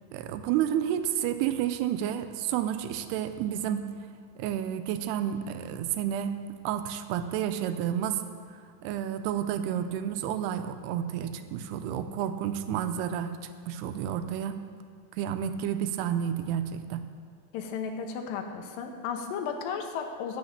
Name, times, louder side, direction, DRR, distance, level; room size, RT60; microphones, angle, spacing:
voice 1, 0.1-3.9 4.4-6.4 6.6-8.2 8.8-13.4 13.7-14.6 15.2-17.1, right 10 dB, 85° right, 9 dB, 2.5 m, -30 dB
voice 2, 17.5-20.4, left 6 dB, 75° left, 4 dB, 2.3 m, -34 dB
10.5 x 6.1 x 8.4 m, 2.2 s
omnidirectional pair, 4.8 m